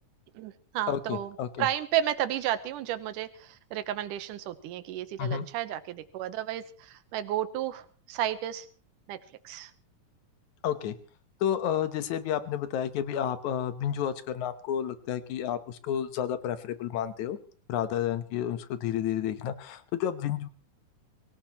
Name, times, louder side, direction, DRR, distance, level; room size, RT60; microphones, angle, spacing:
voice 1, 0.3-8.7 9.1-9.2 9.4-9.7, right 12 dB, 85° right, 11 dB, 2.5 m, -32 dB
voice 2, 0.9-1.7 5.2-5.5 10.6-10.9 11.4-17.4 17.7-20.5, left 10 dB, 70° left, 11 dB, 2.4 m, -31 dB
24.0 x 16.5 x 3.0 m, 0.41 s
omnidirectional pair, 3.6 m